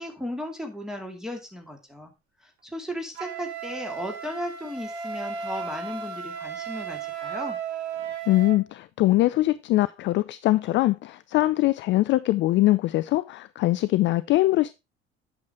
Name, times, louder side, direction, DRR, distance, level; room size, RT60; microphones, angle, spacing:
voice 1, 0.0-2.1 2.4-7.6, equal, ahead, 2.3 m, -35 dB
Wind instrument woodwind instrument, 3.1-8.6, right 6 dB, 75° right, 1.3 m, -35 dB
voice 2, 8.3-14.7, left 17 dB, 35° left, 0.4 m, -22 dB
8.4 x 6.5 x 3.5 m
figure-of-eight pair, 60°, 33 cm